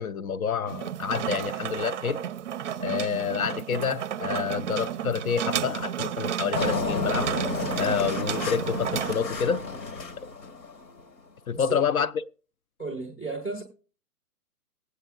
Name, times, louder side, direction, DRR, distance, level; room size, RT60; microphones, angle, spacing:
voice 1, 0.0-2.2 2.8-7.3 7.8-9.7 11.5-12.1, left 7 dB, 60° left, 0.5 m, -28 dB
sound 1, 0.7-9.1, right 10 dB, 50° right, 0.5 m, -32 dB
Engine, 6.5-11.0, left 3 dB, 85° left, 1.4 m, -31 dB
voice 2, 11.5-11.8 12.8-13.6, right 3 dB, 5° left, 0.5 m, -34 dB
19.5 x 8.0 x 2.3 m
hypercardioid pair, 145°, 49 cm